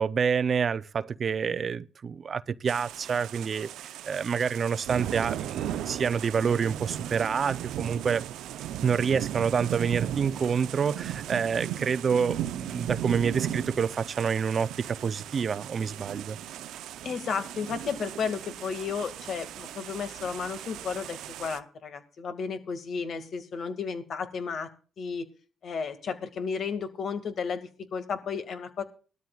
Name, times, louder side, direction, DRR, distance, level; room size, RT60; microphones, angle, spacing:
voice 1, 0.0-8.2 8.8-16.4, right 6 dB, 45° right, 0.7 m, -28 dB
sound 1, 2.7-21.6, right 11 dB, 85° right, 0.7 m, -37 dB
voice 2, 17.0-24.7 25.0-25.3 25.6-28.8, left 6 dB, 60° left, 2.1 m, -33 dB
19.5 x 13.0 x 2.4 m
cardioid pair, 90°, 0 cm